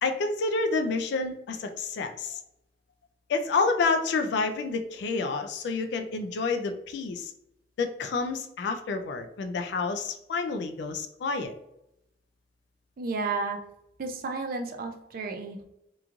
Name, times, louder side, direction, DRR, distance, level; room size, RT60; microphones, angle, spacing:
voice 1, 0.0-2.4 3.3-7.3 7.8-11.5, left 4 dB, 70° left, 6 dB, 0.3 m, -29 dB
voice 2, 13.0-13.6 14.0-15.6, right 3 dB, 55° right, 4 dB, 0.4 m, -32 dB
3.0 x 2.3 x 2.4 m, 0.81 s
head